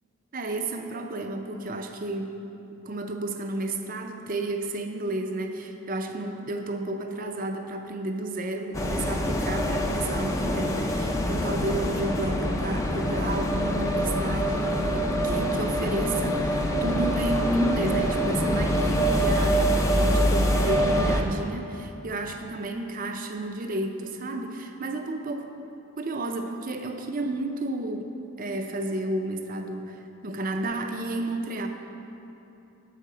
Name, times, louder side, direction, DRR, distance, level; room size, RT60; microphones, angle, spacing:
voice 1, 0.3-2.4 2.8-25.5 26.0-28.1 28.4-31.7, right 2 dB, 40° right, 4 dB, 0.5 m, -31 dB
sound 1, 8.7-21.2, equal, 15° left, 0.4 m, -25 dB
7.1 x 4.9 x 6.7 m, 3.0 s
head